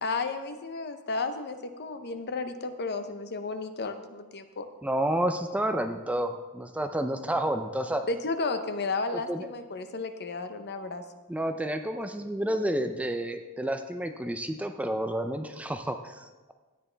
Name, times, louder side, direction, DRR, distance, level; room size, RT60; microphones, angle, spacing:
voice 1, 0.0-4.7 8.1-11.0, left 3 dB, 50° left, 8 dB, 0.8 m, -33 dB
voice 2, 4.8-8.0 9.1-9.5 11.3-16.5, right 1 dB, 5° right, 7 dB, 0.4 m, -30 dB
13.5 x 9.4 x 3.4 m, 1.2 s
head